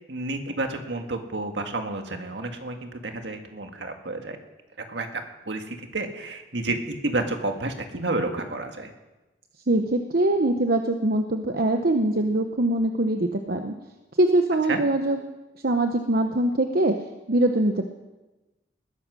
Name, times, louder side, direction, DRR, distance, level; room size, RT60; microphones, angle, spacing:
voice 1, 0.1-4.4 4.8-5.1 5.5-8.9 14.7-14.8, right 2 dB, 75° right, 5 dB, 1.9 m, -30 dB
voice 2, 9.7-13.7 14.2-15.2 15.6-16.9 17.3-17.8, right 1 dB, 60° right, 5 dB, 0.9 m, -22 dB
20.0 x 10.5 x 6.3 m, 1.1 s
head